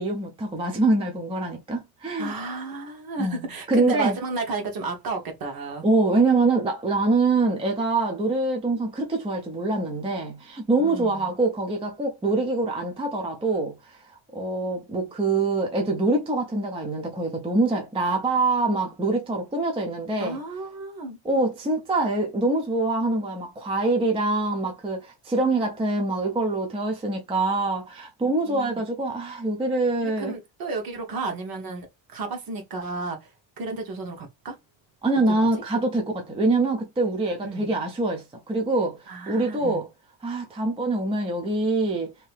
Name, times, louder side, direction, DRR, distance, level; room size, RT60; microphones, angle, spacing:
voice 1, 0.0-2.3 3.2-4.2 5.8-20.4 21.2-30.3 35.0-39.9 40.2-42.1, right 2 dB, 15° right, 0.4 m, -25 dB
voice 2, 2.2-5.8 10.8-11.3 20.2-21.2 28.4-28.8 30.0-33.3 33.6-34.6 35.3-35.5 37.4-37.7 39.1-39.8, right 3 dB, 50° right, 1.1 m, -33 dB
2.8 x 2.7 x 3.3 m
cardioid pair, 175°, 47 cm